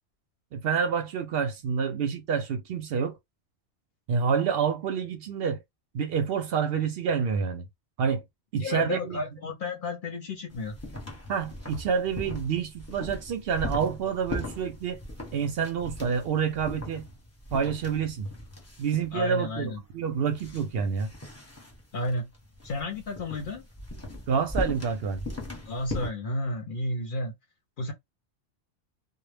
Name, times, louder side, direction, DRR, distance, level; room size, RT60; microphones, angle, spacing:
voice 1, 0.5-3.1 4.1-5.6 5.9-7.7 8.0-8.2 8.5-9.2 11.3-15.0 15.3-17.1 17.5-18.3 18.8-21.1 24.3-25.2, right 6 dB, 65° right, 0.7 m, -28 dB
voice 2, 8.6-10.8 19.1-19.8 21.9-22.3 22.6-23.6 25.6-27.3 27.8-27.9, left 2 dB, 55° left, 0.7 m, -32 dB
sound 1, 10.5-26.1, left 1 dB, 15° left, 0.8 m, -39 dB
2.1 x 2.0 x 3.2 m
omnidirectional pair, 1.2 m